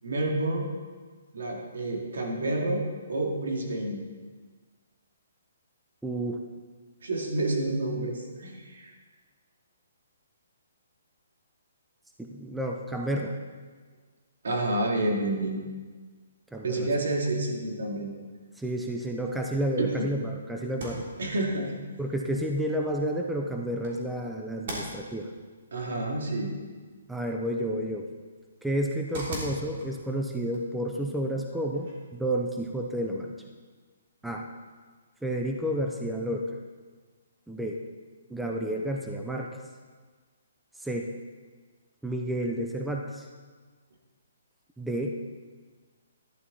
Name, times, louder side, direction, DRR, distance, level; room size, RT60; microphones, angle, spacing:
voice 1, 0.0-0.7 1.3-2.8 3.1-4.0 7.0-8.9 14.4-15.6 16.6-18.1 19.8-20.1 21.2-21.7 25.7-26.5, right 2 dB, 80° right, 0 dB, 2.7 m, -29 dB
voice 2, 6.0-6.4 12.2-13.4 16.5-16.9 18.6-21.0 22.0-25.3 27.1-28.1 28.6-33.3 34.2-34.5 35.2-36.5 37.5-37.8 38.3-39.5 40.8-41.1 42.0-43.3 44.8-45.2, right 1 dB, ahead, 1 dB, 0.7 m, -30 dB
sound 1, 20.6-32.3, right 1 dB, 45° right, 3.4 m, -44 dB
12.5 x 11.0 x 4.2 m, 1.4 s
hypercardioid pair, 160°, 0 cm